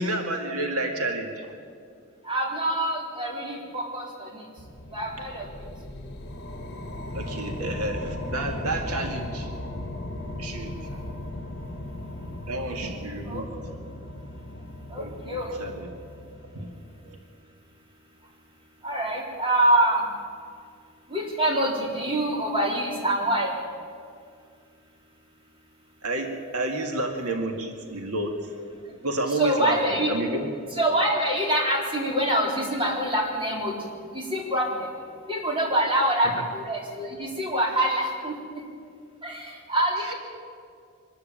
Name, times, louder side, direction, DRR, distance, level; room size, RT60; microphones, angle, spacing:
voice 1, 0.0-1.5 7.1-9.5 10.4-10.8 12.5-13.5 15.0-15.9 16.5-16.7 17.0-17.2 26.0-28.3 29.0-30.5 40.1-40.2, right 1 dB, 85° right, 3 dB, 2.1 m, -30 dB
voice 2, 2.2-4.5 4.9-5.5 13.3-13.4 14.9-15.6 18.8-20.1 21.1-23.5 29.3-30.1 30.7-33.8 34.1-34.9 35.3-38.3 39.2-40.1, right 1 dB, 25° right, -1 dB, 3.8 m, -25 dB
sound 1, 4.6-17.1, left 1 dB, 50° left, 1.9 m, -37 dB
24.0 x 13.0 x 8.9 m, 2.2 s
head